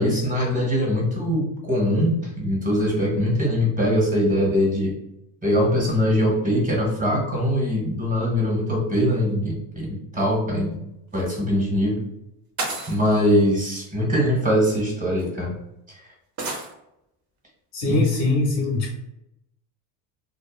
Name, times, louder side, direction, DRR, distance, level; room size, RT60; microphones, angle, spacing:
voice 1, 0.0-4.9 5.4-10.8 11.1-12.0 12.9-15.6 15.9-16.0 17.9-18.0, equal, 20° right, -2 dB, 1.0 m, -22 dB
sound 1, 11.1-11.3 12.6-13.2 14.4-14.5 15.2-15.3 16.4-16.7, right 2 dB, 45° right, 0.7 m, -31 dB
voice 2, 17.7-18.9, left 2 dB, 40° left, 1 dB, 0.4 m, -22 dB
2.7 x 2.1 x 2.3 m, 0.85 s
supercardioid pair, 110°, 43 cm